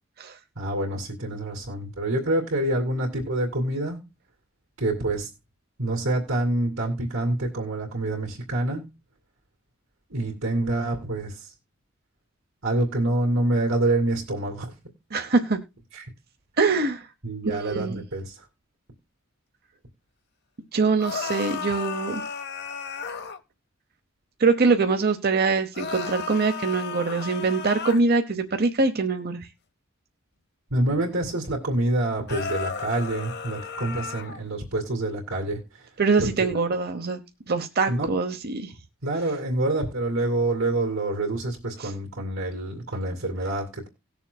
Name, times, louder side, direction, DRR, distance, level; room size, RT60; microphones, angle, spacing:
voice 1, 0.6-4.0 4.8-5.3 5.8-8.8 10.1-11.5 12.6-14.7 15.9-16.0 17.2-18.4 30.7-35.9 36.2-36.5 37.9-38.1 39.0-43.9, right 2 dB, 75° right, -1 dB, 2.7 m, -27 dB
voice 2, 15.1-15.6 16.6-17.0 17.5-18.0 20.7-22.2 24.4-29.5 36.0-37.2 37.5-38.7 41.8-41.9, right 4 dB, 50° right, 7 dB, 0.9 m, -23 dB
sound 1, 21.0-23.4 25.7-28.0 32.3-34.4, left 5 dB, 55° left, 0.9 m, -34 dB
18.5 x 6.9 x 2.3 m, 0.26 s
head